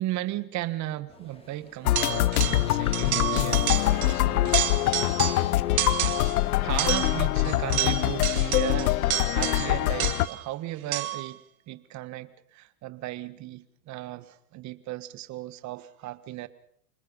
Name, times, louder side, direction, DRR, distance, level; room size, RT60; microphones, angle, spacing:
voice 1, 0.0-4.6 6.6-11.4 11.7-16.5, right 15 dB, 40° right, 14 dB, 1.5 m, -36 dB
sound 1, 1.1-8.4, left 2 dB, 15° left, 4.3 m, -50 dB
sound 2, 1.8-10.3, left 16 dB, 80° left, 0.8 m, -24 dB
sound 3, 2.0-2.7 2.9-4.2 4.4-5.5 5.8-6.4 6.8-10.4 10.9-11.3, right 14 dB, 70° right, 2.4 m, -30 dB
27.0 x 20.0 x 5.6 m, 0.66 s
supercardioid pair, 120°, 44 cm